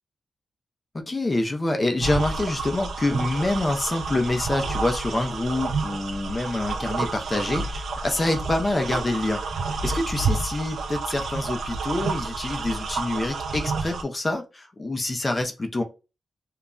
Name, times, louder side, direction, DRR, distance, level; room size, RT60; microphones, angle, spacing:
voice 1, 1.1-9.4 9.8-15.8, left 2 dB, 25° left, 0.4 m, -26 dB
sound 1, 2.0-14.0, right 3 dB, 85° right, 0.4 m, -30 dB
2.2 x 2.0 x 3.5 m
wide cardioid pair, 150°, 0 cm